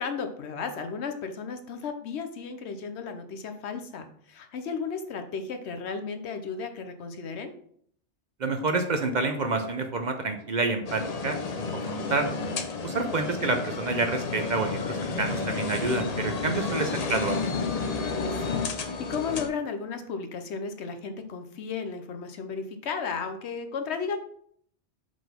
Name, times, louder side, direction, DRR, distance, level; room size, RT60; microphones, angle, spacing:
voice 1, 0.0-7.5 16.6-17.0 18.1-24.2, left 5 dB, 75° left, 7 dB, 1.0 m, -34 dB
voice 2, 8.4-12.2 12.8-17.4, right 3 dB, 50° right, 5 dB, 0.6 m, -28 dB
sound 1, 10.9-19.5, left 4 dB, 45° left, 0.6 m, -31 dB
5.0 x 3.9 x 5.1 m, 0.64 s
omnidirectional pair, 1.2 m